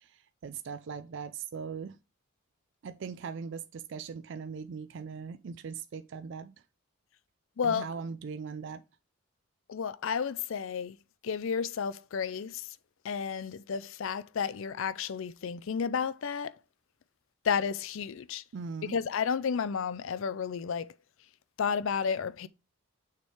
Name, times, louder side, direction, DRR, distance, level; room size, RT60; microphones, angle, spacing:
voice 1, 0.0-2.0 2.8-6.5 7.6-8.8 18.5-19.0, right 5 dB, 55° right, 0.3 m, -40 dB
voice 2, 7.6-7.9 9.7-11.0 11.2-12.8 13.0-16.6 17.4-18.4 18.9-20.9 21.6-22.5, left 6 dB, 65° left, 0.4 m, -32 dB
6.5 x 3.5 x 4.6 m
head